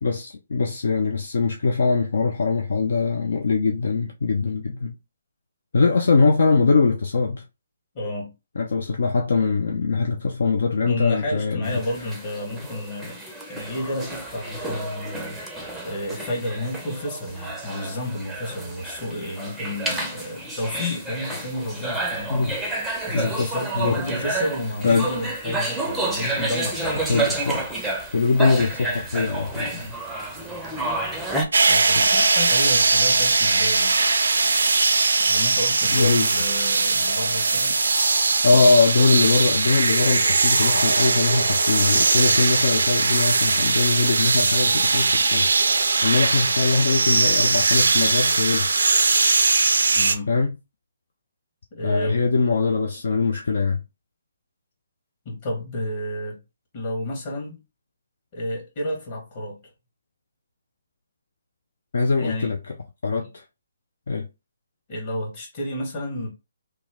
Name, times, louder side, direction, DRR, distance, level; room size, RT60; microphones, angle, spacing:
voice 1, 0.0-5.0 5.7-7.4 8.6-11.8 22.3-22.5 23.1-23.5 23.8-24.0 24.8-25.1 27.1-27.7 28.1-29.7 32.0-32.1 35.9-36.3 38.4-45.5 46.0-48.7 50.3-50.5 51.8-53.8 61.9-62.6 63.0-63.4 64.1-64.3, left 4 dB, 55° left, 0.4 m, -22 dB
voice 2, 7.9-8.3 10.8-27.1 29.7-30.0 31.2-34.0 35.2-37.7 49.9-50.3 51.7-52.2 55.2-56.4 56.7-57.6 58.3-59.6 62.2-62.5 64.9-66.3, left 1 dB, 35° left, 1.5 m, -31 dB
sound 1, 11.6-31.5, right 2 dB, 5° right, 0.6 m, -30 dB
sound 2, 31.5-50.2, right 3 dB, 65° right, 0.4 m, -20 dB
3.0 x 2.2 x 3.5 m
figure-of-eight pair, 140°, 0 cm